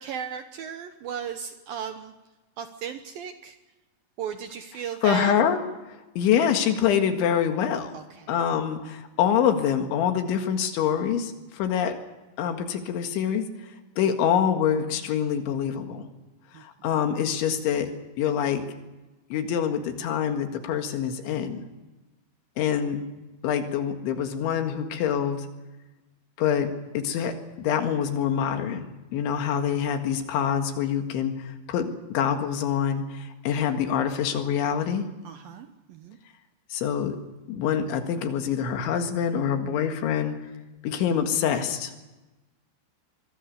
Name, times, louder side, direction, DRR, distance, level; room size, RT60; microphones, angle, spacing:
voice 1, 0.0-2.1 2.6-3.6 4.2-5.3 7.9-8.3 16.5-16.6 35.2-36.2, right 7 dB, 70° right, 8 dB, 2.3 m, -35 dB
voice 2, 5.0-5.6 6.2-8.0 8.3-12.0 12.4-13.5 14.0-16.0 16.5-17.9 18.2-18.7 19.3-21.6 22.6-23.1 23.4-25.5 26.4-35.1 36.7-37.2 37.5-40.4 40.8-41.9, left 8 dB, 85° left, 6 dB, 4.2 m, -25 dB
25.0 x 23.0 x 6.6 m, 1.1 s
omnidirectional pair, 5.3 m